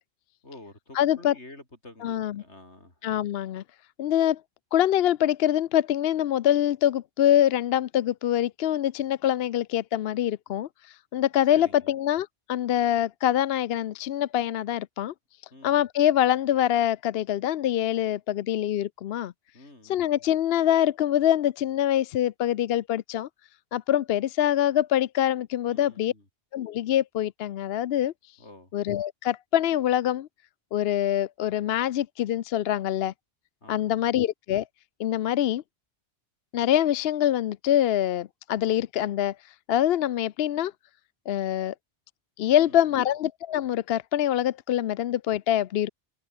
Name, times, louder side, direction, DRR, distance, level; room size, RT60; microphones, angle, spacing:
voice 1, 0.4-3.1 11.5-12.0 15.5-15.9 19.5-20.2 25.7-26.3 28.4-28.7 33.6-34.2 42.5-43.1, left 2 dB, 85° left, 5.8 m, -49 dB
voice 2, 0.9-1.3 2.0-2.4 3.0-3.6 4.0-4.4 4.7-15.1 15.6-19.3 19.9-23.3 23.7-26.1 26.5-28.1 28.7-30.3 30.7-33.1 33.7-34.7 35.0-35.6 36.5-39.4 39.7-40.7 41.3-41.7 42.4-45.9, left 11 dB, 70° left, 0.8 m, -24 dB
omnidirectional pair, 1.1 m